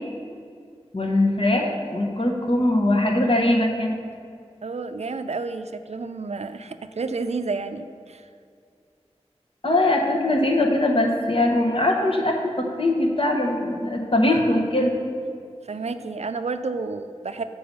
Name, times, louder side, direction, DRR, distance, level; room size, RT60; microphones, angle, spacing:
voice 1, 0.9-4.0 9.6-14.9, left 1 dB, 55° left, 1 dB, 1.0 m, -21 dB
voice 2, 4.6-8.3 15.7-17.4, right 4 dB, 70° right, 10 dB, 0.4 m, -30 dB
6.8 x 4.7 x 5.4 m, 2.3 s
wide cardioid pair, 45°, 11 cm